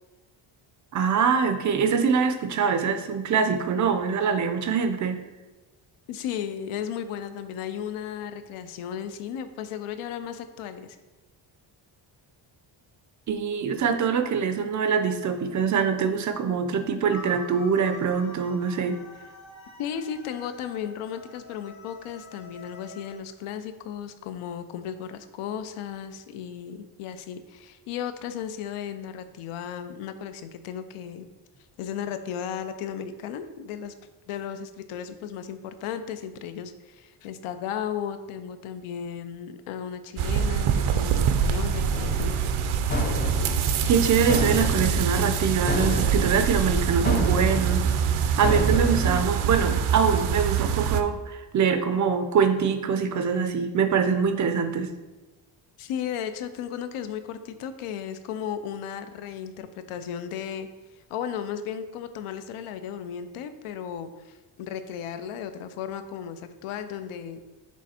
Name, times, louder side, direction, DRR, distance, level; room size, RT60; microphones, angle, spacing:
voice 1, 0.9-5.2 13.3-19.0 43.9-47.9 48.1-54.9, right 6 dB, 40° right, 8 dB, 0.4 m, -24 dB
voice 2, 6.1-11.0 19.8-31.3 31.8-33.9 34.3-42.3 49.0-49.3 55.8-60.7 61.1-67.4, left 8 dB, 80° left, 10 dB, 0.6 m, -35 dB
sound 1, 17.1-23.2, left 2 dB, 65° left, 1.9 m, -46 dB
sound 2, 40.2-51.0, right 7 dB, 85° right, 0.6 m, -24 dB
Fra mit vindue, 41.9-49.1, left 2 dB, 20° left, 0.4 m, -32 dB
6.4 x 3.5 x 4.2 m, 1.1 s
cardioid pair, 180°, 49 cm